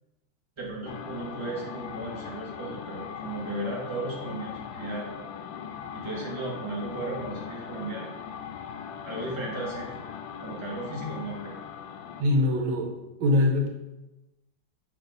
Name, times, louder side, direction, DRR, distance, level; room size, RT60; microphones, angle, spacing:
voice 1, 0.6-5.1 5.9-8.1 9.0-10.0 10.4-11.6, right 2 dB, 15° right, -5 dB, 1.8 m, -35 dB
sound 1, 0.9-12.3, left 7 dB, 80° left, 1.3 m, -40 dB
voice 2, 12.2-12.9 13.2-13.7, left 2 dB, 80° right, 1 dB, 1.7 m, -22 dB
6.8 x 5.7 x 4.0 m, 1.0 s
omnidirectional pair, 2.1 m